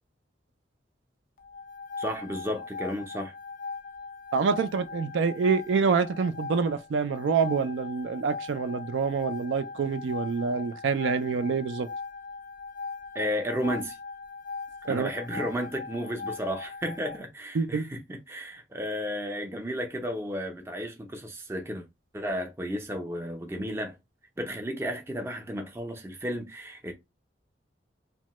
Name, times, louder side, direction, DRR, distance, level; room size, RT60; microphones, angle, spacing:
sound 1, 1.4-17.2, left 4 dB, 50° left, 0.4 m, -40 dB
voice 1, 2.0-3.3 13.1-14.0 14.9-21.9 22.1-24.0 24.4-26.9, equal, 15° right, 0.5 m, -33 dB
voice 2, 4.3-11.9 14.9-15.1 17.5-17.9, right 5 dB, 80° right, 0.3 m, -26 dB
2.9 x 2.2 x 2.9 m
head